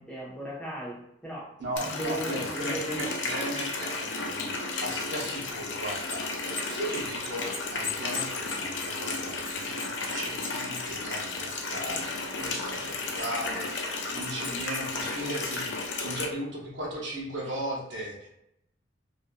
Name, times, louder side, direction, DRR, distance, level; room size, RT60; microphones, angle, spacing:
voice 1, 0.0-1.5 1.8-3.0, right 1 dB, 5° left, -8 dB, 0.8 m, -37 dB
voice 2, 1.6-4.5 4.8-13.8 14.1-18.3, right 1 dB, 75° right, -4 dB, 0.8 m, -37 dB
Water tap faucet, 1.8-16.3, left 3 dB, 85° left, 0.4 m, -33 dB
sound 1, 6.1-12.1 12.4-13.6 14.2-14.8 15.2-15.8, left 5 dB, 35° left, 1.0 m, -40 dB
2.5 x 2.4 x 2.2 m, 0.81 s
head